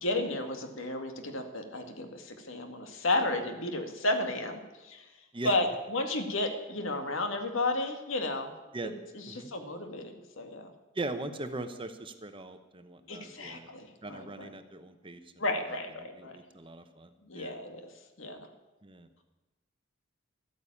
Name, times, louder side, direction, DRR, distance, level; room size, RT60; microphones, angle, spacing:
voice 1, 0.0-5.1 5.4-8.5 8.8-10.7 13.1-14.5 15.4-16.4 17.2-17.8 18.2-18.4, left 2 dB, 70° left, 6 dB, 1.9 m, -33 dB
voice 2, 10.9-13.7 14.0-15.2 16.0-17.5 18.8-19.1, right 2 dB, 25° right, 9 dB, 0.9 m, -40 dB
13.0 x 9.6 x 8.6 m, 1.1 s
head